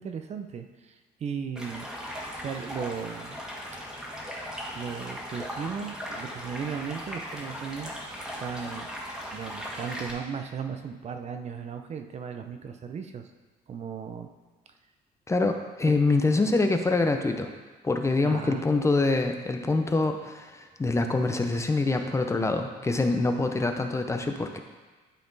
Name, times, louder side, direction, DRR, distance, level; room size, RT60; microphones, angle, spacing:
voice 1, 0.0-1.9 2.4-3.4 4.7-8.9 9.3-13.3 13.7-14.3 15.8-15.9 18.2-18.7, right 6 dB, 40° right, 7 dB, 0.6 m, -36 dB
Stream, 1.6-10.1, equal, 5° right, 1.6 m, -38 dB
voice 2, 15.3-17.5 17.8-24.6, left 3 dB, 15° left, 5 dB, 0.7 m, -25 dB
11.5 x 4.2 x 4.0 m, 1.3 s
cardioid pair, 110°, 17 cm